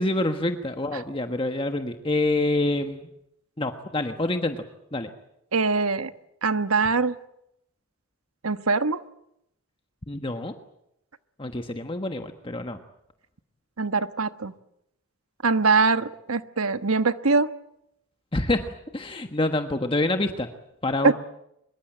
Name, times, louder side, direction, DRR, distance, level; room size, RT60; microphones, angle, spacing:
voice 1, 0.0-3.1 3.6-4.6 4.9-5.1 10.1-10.5 11.4-12.8 18.3-20.5 20.8-21.1, left 2 dB, 25° left, 6 dB, 1.3 m, -27 dB
voice 2, 5.5-6.1 6.4-7.2 8.4-9.0 13.8-14.5 15.4-17.5 21.0-21.1, right 4 dB, 90° right, 11 dB, 1.3 m, -22 dB
25.0 x 22.5 x 9.1 m, 0.80 s
head